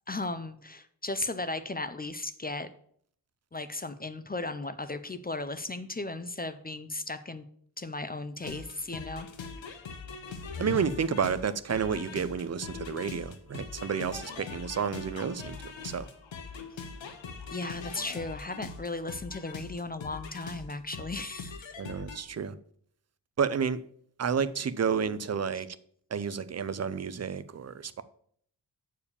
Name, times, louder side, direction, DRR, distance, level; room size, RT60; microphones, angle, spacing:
voice 1, 0.1-2.7 3.5-7.5 7.8-9.3 17.5-22.0, left 2 dB, 20° left, 0.4 m, -36 dB
sound 1, 8.4-22.2, left 4 dB, 85° left, 1.2 m, -41 dB
voice 2, 10.6-16.1 21.8-22.5 23.4-23.8 24.2-25.8 26.1-28.0, right 6 dB, 35° right, 0.5 m, -31 dB
7.0 x 4.7 x 6.8 m
wide cardioid pair, 135°, 44 cm